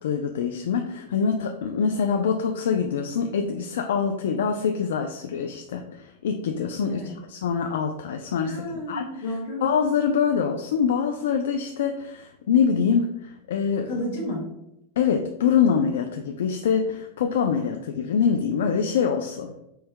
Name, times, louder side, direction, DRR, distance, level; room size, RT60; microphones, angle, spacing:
voice 1, 0.0-7.0 7.3-9.1 9.6-13.9 15.0-19.5, left 6 dB, 90° left, 5 dB, 0.3 m, -24 dB
voice 2, 6.9-7.2 8.4-9.7 13.8-14.4, left 1 dB, 70° left, 0 dB, 1.5 m, -32 dB
4.5 x 2.2 x 3.4 m, 0.84 s
supercardioid pair, 160°, 0 cm